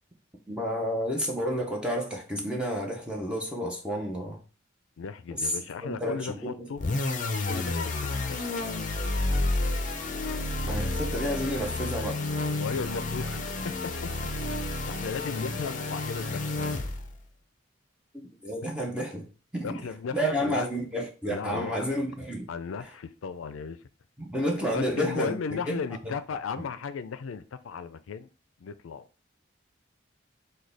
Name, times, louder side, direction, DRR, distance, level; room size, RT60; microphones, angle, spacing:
voice 1, 0.5-4.4 5.4-5.5 5.8-6.7 10.6-12.2 18.4-19.3 19.5-19.8 20.1-22.5 24.2-25.3 25.7-26.1, equal, 5° right, 0.7 m, -30 dB
voice 2, 5.0-6.8 7.5-8.4 12.6-14.1 14.9-16.6 19.6-20.7 21.2-21.8 22.5-23.8 24.7-28.3 28.6-29.1, left 5 dB, 90° left, 0.4 m, -35 dB
sound 1, 6.8-17.2, left 2 dB, 40° left, 0.5 m, -30 dB
6.2 x 2.3 x 3.3 m
head